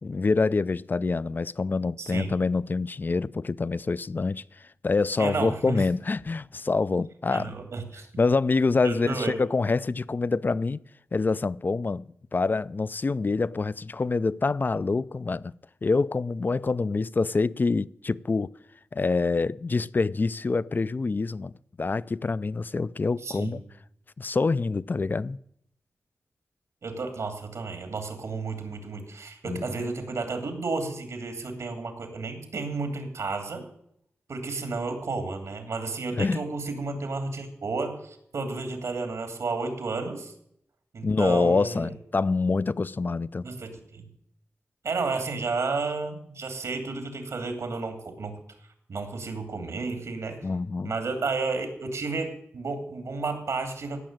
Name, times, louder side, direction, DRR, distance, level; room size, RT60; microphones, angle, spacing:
voice 1, 0.0-7.5 8.2-10.8 11.1-15.5 15.8-18.5 18.9-21.5 21.8-23.6 24.2-25.4 29.4-29.6 36.2-36.4 41.0-43.4 50.4-50.9, left 3 dB, 40° left, 0.5 m, -26 dB
voice 2, 2.0-2.4 5.2-5.8 7.3-8.1 8.8-9.4 23.2-23.6 26.8-33.6 34.3-40.3 40.9-41.9 43.4-44.0 44.8-48.4 48.9-50.4 50.8-54.0, right 3 dB, 80° right, 2.8 m, -32 dB
16.5 x 6.3 x 9.0 m
cardioid pair, 60°, 5 cm